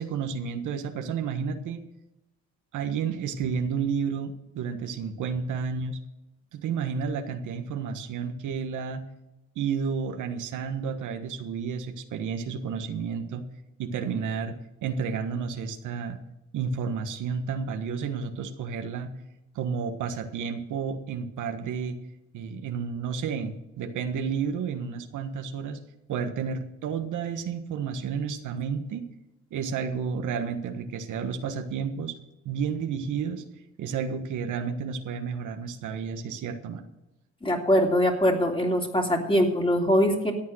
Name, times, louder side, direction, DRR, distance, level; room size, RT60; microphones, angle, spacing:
voice 1, 0.0-1.8 2.7-6.0 6.5-9.0 9.5-13.4 13.8-16.2 16.5-19.1 19.5-22.0 22.3-25.8 26.1-29.1 29.5-32.1 32.4-33.4 33.8-36.8, right 6 dB, 80° right, 6 dB, 1.5 m, -31 dB
voice 2, 37.4-40.3, equal, 15° left, 1 dB, 3.0 m, -22 dB
13.5 x 8.7 x 6.4 m, 0.96 s
cardioid pair, 90°, 30 cm